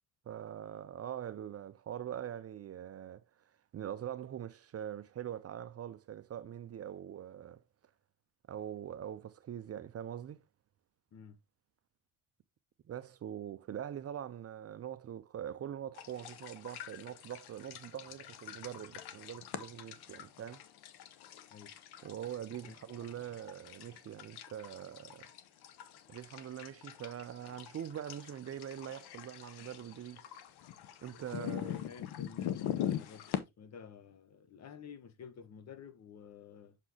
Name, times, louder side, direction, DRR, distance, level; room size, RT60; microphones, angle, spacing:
voice 1, 0.3-3.2 3.7-7.6 8.5-10.4 12.9-20.6 22.0-25.3 26.1-30.2 31.0-31.8, right 10 dB, 35° right, 0.6 m, -43 dB
sound 1, 15.9-33.4, left 11 dB, 70° left, 0.9 m, -43 dB
voice 2, 31.4-36.8, left 6 dB, 40° left, 0.9 m, -52 dB
6.2 x 5.9 x 2.8 m
cardioid pair, 105°, 40 cm